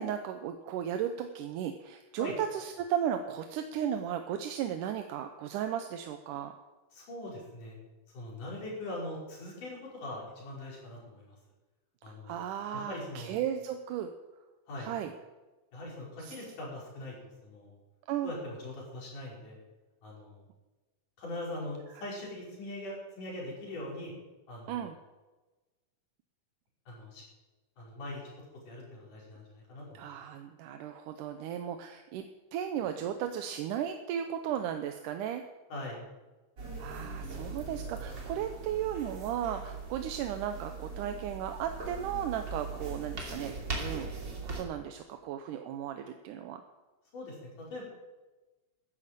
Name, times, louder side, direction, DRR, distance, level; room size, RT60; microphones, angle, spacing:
voice 1, 0.0-6.5 12.1-14.1 14.8-15.1 16.2-16.4 18.1-18.3 24.7-25.0 29.9-32.3 32.5-35.4 36.8-44.1 44.4-46.6, right 9 dB, 80° right, 6 dB, 2.3 m, -35 dB
voice 2, 6.9-7.8 8.1-11.3 12.0-12.4 12.7-13.3 14.7-14.9 15.7-17.1 17.4-17.8 18.2-19.6 20.0-20.4 21.2-24.1 24.5-24.9 26.9-27.2 27.8-28.2 28.7-30.1 35.7-36.0 47.1-47.8, left 1 dB, 75° left, -4 dB, 6.6 m, -41 dB
sound 1, 36.6-44.6, right 3 dB, 35° right, 3.1 m, -40 dB
13.0 x 11.0 x 7.6 m, 1.2 s
omnidirectional pair, 3.7 m